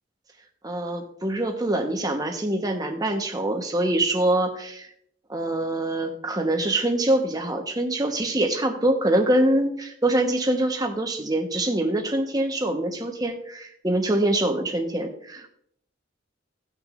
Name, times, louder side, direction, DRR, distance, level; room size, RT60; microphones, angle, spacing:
voice 1, 0.6-4.9 5.3-15.5, right 1 dB, 20° right, 3 dB, 1.2 m, -24 dB
17.0 x 6.1 x 2.6 m, 0.70 s
head